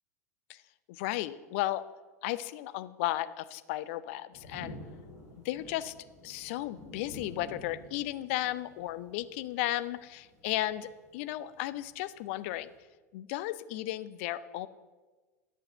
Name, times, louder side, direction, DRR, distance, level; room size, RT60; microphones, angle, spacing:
voice 1, 0.9-1.8 2.2-4.8 5.4-5.9 6.2-12.7 13.1-14.7, left 15 dB, 50° left, 14 dB, 0.5 m, -34 dB
sound 1, 4.3-12.8, left 1 dB, 75° left, 3.2 m, -50 dB
11.0 x 6.5 x 6.6 m, 1.3 s
figure-of-eight pair, 85°, 9 cm